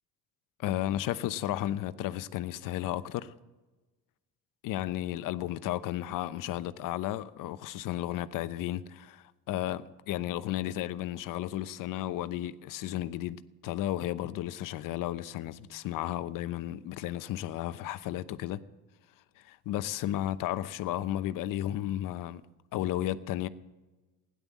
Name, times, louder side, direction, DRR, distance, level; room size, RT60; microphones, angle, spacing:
voice 1, 0.6-3.3 4.6-18.6 19.4-22.4 22.7-23.5, left 13 dB, 65° left, 0.9 m, -33 dB
16.5 x 11.0 x 7.4 m
supercardioid pair, 95°, 35 cm